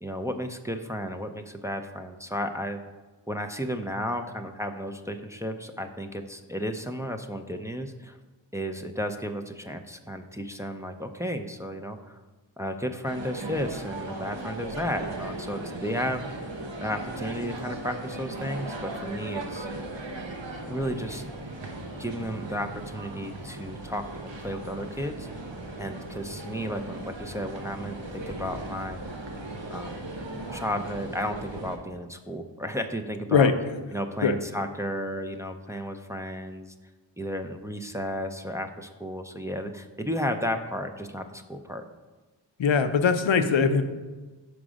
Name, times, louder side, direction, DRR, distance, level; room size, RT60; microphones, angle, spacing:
voice 1, 0.0-2.8 3.3-8.2 8.5-12.2 12.6-16.5 16.8-19.7 20.7-21.2 22.0-25.3 25.8-29.0 29.7-30.0 30.5-33.5 33.9-36.7 37.2-41.8, equal, 5° right, 5 dB, 0.5 m, -33 dB
sound 1, 13.0-31.8, right 2 dB, 75° right, 1.0 m, -37 dB
voice 2, 42.6-43.8, left 5 dB, 80° left, 9 dB, 0.6 m, -21 dB
5.1 x 4.7 x 6.2 m, 1.3 s
wide cardioid pair, 40°, 45 cm